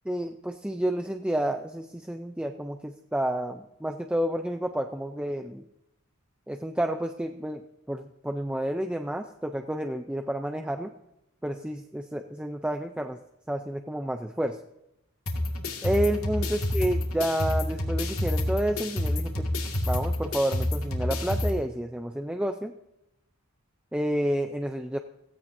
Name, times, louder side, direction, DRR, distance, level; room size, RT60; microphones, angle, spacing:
voice 1, 0.1-5.6 6.5-10.9 11.4-13.2 13.5-14.6 15.8-19.5 19.9-22.7 23.9-25.0, right 1 dB, 5° right, 6 dB, 0.5 m, -30 dB
sound 1, 15.3-21.5, left 1 dB, 90° left, 2.2 m, -28 dB
16.5 x 15.5 x 2.7 m, 0.86 s
head